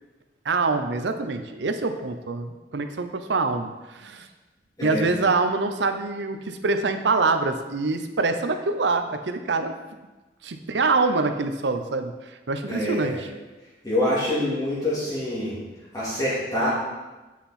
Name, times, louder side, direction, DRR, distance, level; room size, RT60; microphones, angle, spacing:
voice 1, 0.4-4.3 4.8-9.7 10.4-12.1 12.5-13.3, right 3 dB, 80° right, 8 dB, 0.7 m, -25 dB
voice 2, 12.7-13.2 13.8-15.6 15.9-16.7, left 1 dB, 20° left, -9 dB, 2.4 m, -25 dB
8.4 x 5.8 x 4.2 m, 1.2 s
head